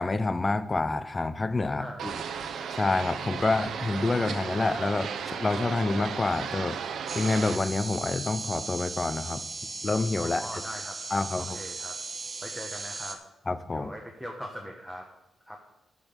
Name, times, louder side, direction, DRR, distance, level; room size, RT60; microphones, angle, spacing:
voice 1, 0.0-2.1 2.7-6.8 7.1-9.4 9.8-10.4 11.1-11.6 13.5-13.9, left 3 dB, 20° left, 13 dB, 0.6 m, -28 dB
sound 1, 2.0-7.6, right 7 dB, 70° right, 0.9 m, -35 dB
sound 2, 7.1-13.1, right 3 dB, 35° right, 1.2 m, -37 dB
voice 2, 10.2-11.0 11.4-12.0 12.4-13.2 13.7-15.1 15.4-15.6, equal, 5° left, 1 dB, 1.2 m, -40 dB
11.0 x 6.0 x 6.8 m, 0.90 s
cardioid pair, 120°, 0 cm